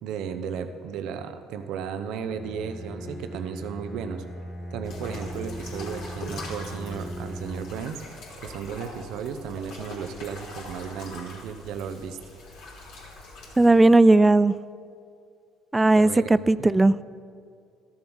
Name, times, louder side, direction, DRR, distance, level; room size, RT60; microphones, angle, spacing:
voice 1, 0.0-4.2 4.7-8.0 8.4-12.2 16.0-16.7, right 7 dB, 70° right, 9 dB, 0.8 m, -34 dB
Bowed string instrument, 2.3-7.9, equal, 30° left, 2.1 m, -38 dB
sound 1, 4.8-13.7, left 2 dB, 70° left, 3.2 m, -42 dB
voice 2, 13.6-14.5 15.7-17.0, right 2 dB, 15° right, 18 dB, 0.3 m, -17 dB
12.5 x 7.2 x 6.3 m, 2.4 s
supercardioid pair, 75°, 0 cm